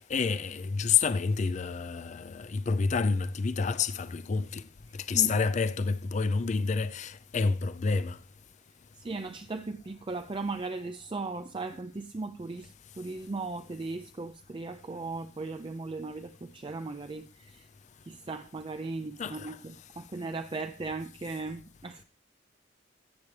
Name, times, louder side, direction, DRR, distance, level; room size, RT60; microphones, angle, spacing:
voice 1, 0.0-4.6 5.1-8.2 19.2-19.6, left 5 dB, 35° left, 0.4 m, -28 dB
voice 2, 9.0-12.7 13.0-17.6 18.1-22.0, right 3 dB, 25° right, 0.4 m, -37 dB
14.0 x 8.4 x 3.2 m
head